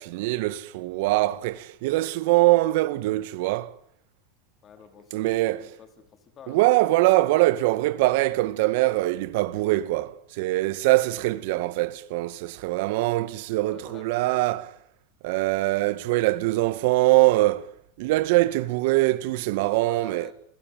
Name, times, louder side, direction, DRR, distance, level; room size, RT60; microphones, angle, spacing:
voice 1, 0.0-3.7 5.1-5.7 6.5-14.7 15.2-17.7 18.0-20.3, right 18 dB, 60° right, 1.8 m, -23 dB
voice 2, 4.6-6.6 11.5-11.7 13.6-14.4 19.3-20.3, left 7 dB, 25° left, 4.2 m, -49 dB
27.5 x 20.5 x 9.2 m
supercardioid pair, 155°, 0 cm